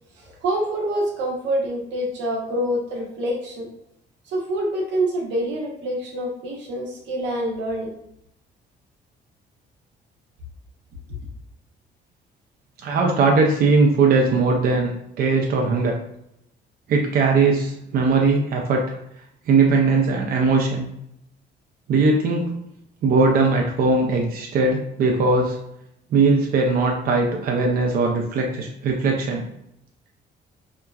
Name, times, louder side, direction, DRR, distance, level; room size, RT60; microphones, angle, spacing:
voice 1, 0.2-3.7 4.3-7.9, right 1 dB, 85° right, -1 dB, 0.8 m, -26 dB
voice 2, 12.8-16.0 16.9-18.8 19.5-20.9 21.9-22.5 23.0-25.6 26.1-29.4, right 3 dB, 55° right, 1 dB, 0.4 m, -19 dB
2.9 x 2.3 x 2.2 m, 0.78 s
cardioid pair, 110°, 18 cm